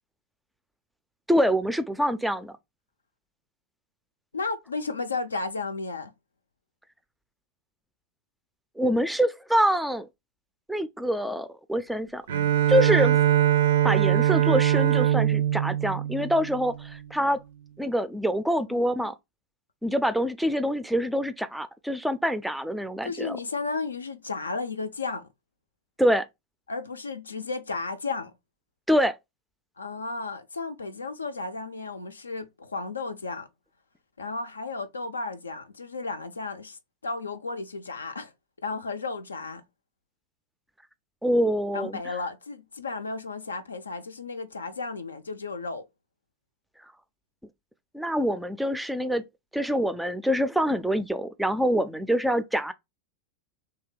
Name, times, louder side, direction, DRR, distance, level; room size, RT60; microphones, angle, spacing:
voice 1, 1.3-2.5 8.8-10.1 10.7-12.2 12.7-13.2 13.8-17.4 17.8-19.1 19.8-23.4 26.0-26.3 28.9-29.1 41.2-42.0 47.9-49.2 49.5-52.7, equal, ahead, 0.4 m, -25 dB
voice 2, 4.3-6.1 18.7-19.1 23.0-25.3 26.7-28.3 29.8-33.5 34.2-38.3 38.6-39.6 41.7-45.8, left 3 dB, 75° left, 0.4 m, -34 dB
Bowed string instrument, 12.3-17.0, right 11 dB, 60° right, 0.5 m, -22 dB
3.3 x 2.8 x 3.7 m
figure-of-eight pair, 90°, 0 cm